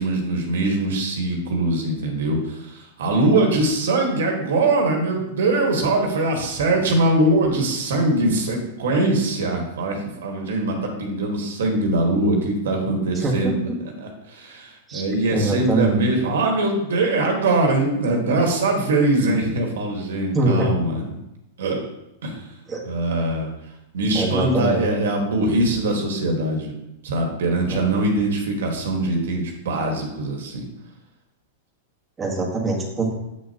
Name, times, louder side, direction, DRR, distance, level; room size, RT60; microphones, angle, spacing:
voice 1, 0.0-13.7 14.0-21.2 21.6-21.9 22.2-22.4 22.8-23.5 23.9-26.8 27.0-30.6, right 2 dB, 85° right, 2 dB, 1.6 m, -22 dB
voice 2, 13.2-13.5 14.9-15.0 15.3-16.0 20.3-20.7 22.7-22.8 24.1-24.8 27.7-28.0 32.2-33.1, right 2 dB, 15° right, -3 dB, 1.5 m, -23 dB
7.4 x 6.6 x 2.9 m, 0.89 s
supercardioid pair, 140°, 0 cm